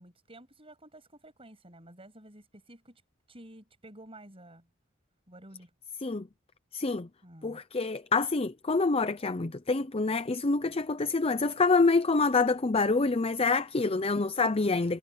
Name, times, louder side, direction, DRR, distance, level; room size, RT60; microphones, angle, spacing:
voice 1, 0.0-3.0 3.3-4.7 5.3-5.7 7.2-7.6, right 1 dB, 30° right, 8.0 m, -51 dB
voice 2, 6.7-7.1 7.4-15.0, left 3 dB, 30° left, 0.6 m, -26 dB
head